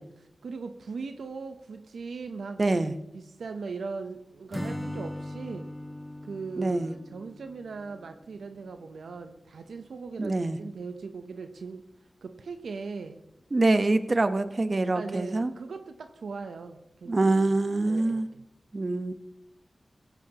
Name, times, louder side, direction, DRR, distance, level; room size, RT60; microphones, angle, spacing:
voice 1, 0.0-2.6 3.1-5.7 6.2-11.8 12.2-13.2 14.9-17.2 17.9-18.4, right 4 dB, 90° right, 7 dB, 0.8 m, -39 dB
voice 2, 2.6-2.9 6.6-6.9 10.2-10.6 13.5-15.5 17.1-18.3 18.7-19.1, right 2 dB, 50° right, 10 dB, 1.0 m, -25 dB
Acoustic guitar / Strum, 4.5-8.4, left 1 dB, 15° left, 1.1 m, -39 dB
16.5 x 16.0 x 2.9 m, 0.89 s
cardioid pair, 45°, 0 cm